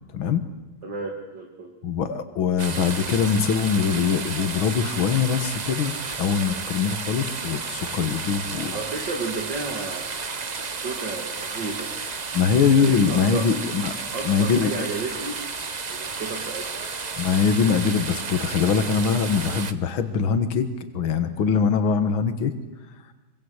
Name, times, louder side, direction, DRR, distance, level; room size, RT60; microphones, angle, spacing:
voice 1, 0.8-1.8 8.7-10.1 10.6-11.9 12.8-13.5 14.1-15.4 15.9-16.8, right 3 dB, 60° right, 1 dB, 3.0 m, -33 dB
voice 2, 1.8-8.8 12.3-13.9 14.3-14.7 17.2-20.7 20.9-22.5, left 6 dB, 75° left, 9 dB, 2.3 m, -22 dB
sound 1, 2.6-19.7, right 4 dB, 45° right, 0.5 m, -32 dB
25.0 x 25.0 x 8.1 m, 1.2 s
omnidirectional pair, 2.2 m